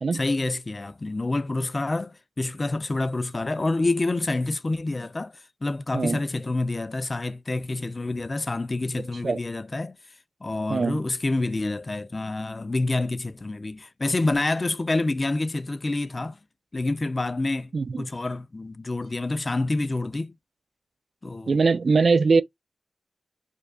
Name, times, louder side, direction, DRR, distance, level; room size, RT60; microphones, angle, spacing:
voice 1, 0.1-5.3 5.6-10.0 10.4-16.4 16.7-17.7 18.0-20.4 21.2-21.6, left 2 dB, 40° left, 0.4 m, -27 dB
voice 2, 10.7-11.0 17.7-18.1 21.5-22.4, right 4 dB, 65° right, 0.3 m, -21 dB
5.0 x 2.3 x 2.2 m
wide cardioid pair, 65°, 0 cm